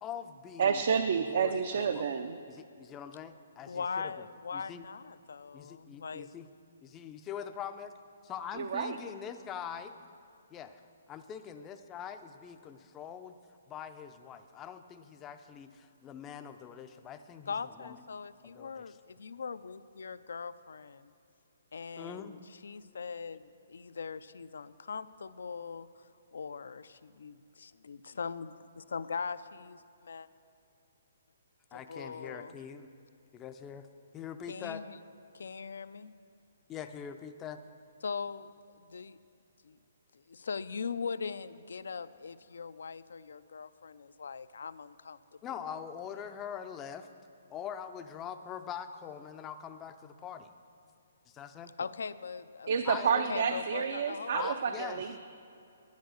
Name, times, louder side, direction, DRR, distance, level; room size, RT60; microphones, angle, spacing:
voice 1, 0.0-0.8 1.2-2.0 2.5-4.2 4.5-4.8 5.5-6.5 6.8-7.9 8.2-10.0 10.5-10.8 11.1-13.4 13.7-18.0 18.4-19.0 22.0-22.3 31.7-32.9 33.3-33.9 34.1-34.8 36.7-37.6 45.4-47.1 47.5-50.5 51.3-51.7 52.8-53.6 54.3-55.0, left 8 dB, 15° left, 8 dB, 0.4 m, -43 dB
voice 2, 0.6-2.4 8.6-9.0 52.7-55.2, right 6 dB, 50° right, 8 dB, 0.5 m, -29 dB
voice 3, 3.7-6.3 17.5-21.1 21.7-26.0 26.3-28.5 28.9-30.3 31.7-32.5 34.5-35.0 35.3-36.1 38.0-38.5 38.8-39.2 39.6-39.8 40.1-45.2 45.5-45.8 51.8-52.7 53.1-54.5, left 5 dB, 80° left, 14 dB, 0.4 m, -40 dB
10.5 x 10.5 x 6.3 m, 2.6 s
hypercardioid pair, 170°, 0 cm